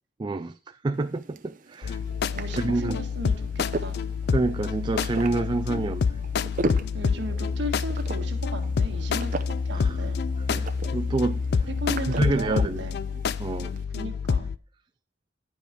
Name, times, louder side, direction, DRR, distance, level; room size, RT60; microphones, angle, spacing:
voice 1, 0.2-2.0 2.6-3.0 4.3-6.0 9.7-10.0 10.5-11.6 12.1-12.8 13.4-13.7, right 3 dB, 25° right, 0.3 m, -28 dB
sound 1, 0.9-13.8, right 2 dB, 50° right, 0.7 m, -38 dB
sound 2, 1.8-14.6, left 5 dB, 60° left, 0.4 m, -28 dB
voice 2, 2.3-4.0 6.9-9.4 9.7-10.2 11.7-13.0 13.9-14.5, equal, 75° right, 1.7 m, -36 dB
10.5 x 5.3 x 4.9 m
head